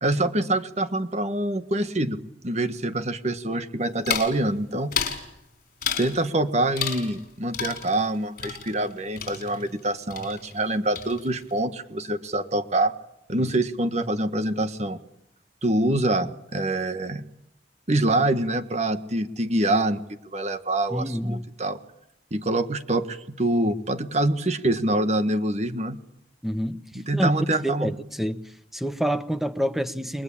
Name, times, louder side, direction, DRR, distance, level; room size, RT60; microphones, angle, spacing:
voice 1, 0.0-5.0 6.0-12.9 13.3-15.0 15.6-17.3 17.9-20.0 20.3-21.8 22.3-26.0 26.9-27.9, right 1 dB, 35° right, 1.5 m, -25 dB
sound 1, 4.1-4.4 4.9-5.3 5.8-6.2 6.8-7.3 7.5-9.9 10.1-10.7 11.0-11.5, left 7 dB, 55° left, 5.1 m, -31 dB
voice 2, 20.9-21.5 26.4-26.8 27.1-27.3 27.6-28.4 28.7-30.2, equal, ahead, 1.0 m, -27 dB
29.5 x 22.5 x 8.8 m
head